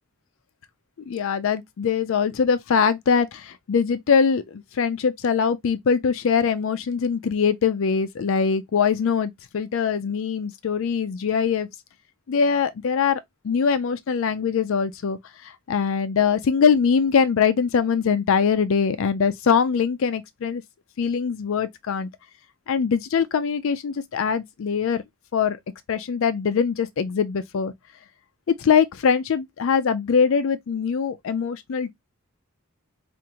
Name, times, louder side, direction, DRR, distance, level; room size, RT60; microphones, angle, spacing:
voice 1, 1.1-11.7 12.3-20.6 21.0-22.1 22.7-25.0 25.3-25.6 25.9-27.7 28.6-31.9, left 6 dB, 65° left, 0.4 m, -22 dB
4.7 x 2.5 x 2.8 m
head